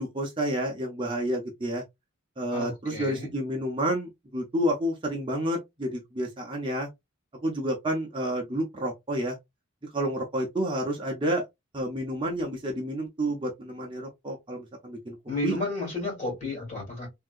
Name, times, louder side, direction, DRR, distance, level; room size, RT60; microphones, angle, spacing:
voice 1, 0.0-1.8 2.4-6.9 7.4-9.4 9.9-11.4 11.7-15.2 15.4-15.6, right 1 dB, 25° right, 0.6 m, -30 dB
voice 2, 2.5-3.3 15.3-17.1, left 2 dB, 35° left, 2.4 m, -32 dB
3.5 x 2.7 x 2.4 m
head